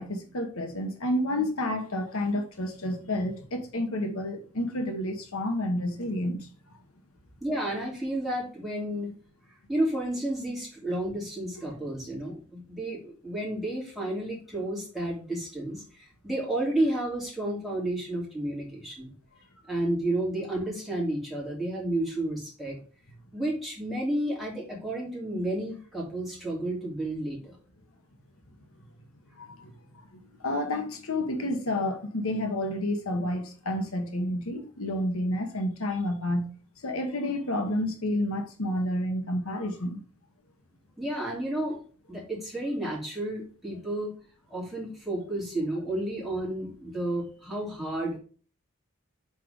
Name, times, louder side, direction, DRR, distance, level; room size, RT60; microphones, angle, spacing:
voice 1, 0.0-6.8 29.4-36.5 36.8-40.0, left 1 dB, 75° left, 1.1 m, -30 dB
voice 2, 7.4-9.1 9.7-19.1 19.7-22.8 23.3-27.6 41.0-41.8 42.1-44.1 44.5-48.2, right 1 dB, ahead, 2.9 m, -31 dB
5.9 x 4.7 x 5.1 m
head